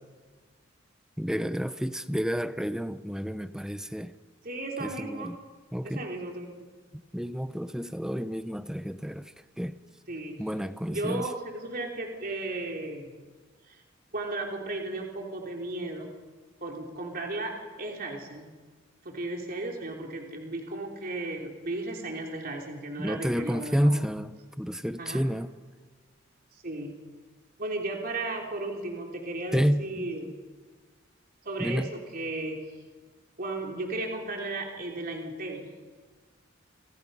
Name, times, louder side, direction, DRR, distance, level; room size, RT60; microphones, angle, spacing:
voice 1, 1.2-4.1 4.8-5.4 5.7-6.1 7.1-9.7 10.4-11.3 23.0-25.5 29.5-29.9 31.6-31.9, equal, 5° right, 0.8 m, -30 dB
voice 2, 4.4-5.3 5.8-6.7 10.1-10.4 10.9-13.1 13.7-13.8 14.1-16.1 16.6-17.5 17.8-18.5 19.1-24.0 25.0-25.2 26.5-26.9 27.6-30.3 31.5-32.6 33.4-35.7, right 2 dB, 45° right, 3.3 m, -35 dB
28.5 x 27.0 x 5.6 m
head